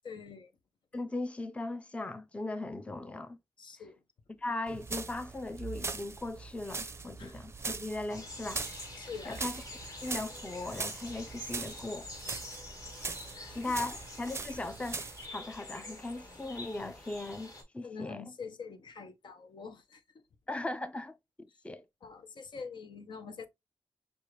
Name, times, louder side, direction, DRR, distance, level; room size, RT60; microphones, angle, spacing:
voice 1, 0.0-0.5 3.6-4.0 7.2-7.3 9.0-9.4 12.3-12.4 13.3-14.0 17.8-20.0 22.0-23.5, left 5 dB, 65° left, 0.8 m, -45 dB
voice 2, 0.9-3.4 4.4-8.6 9.2-9.6 10.0-12.1 13.5-15.0 15.3-18.3 20.5-21.8, left 2 dB, 15° left, 0.5 m, -38 dB
sound 1, 4.7-15.3, right 4 dB, 30° right, 0.5 m, -41 dB
sound 2, 8.1-17.6, left 1 dB, 45° left, 2.5 m, -47 dB
6.3 x 2.5 x 3.1 m
cardioid pair, 70°, 8 cm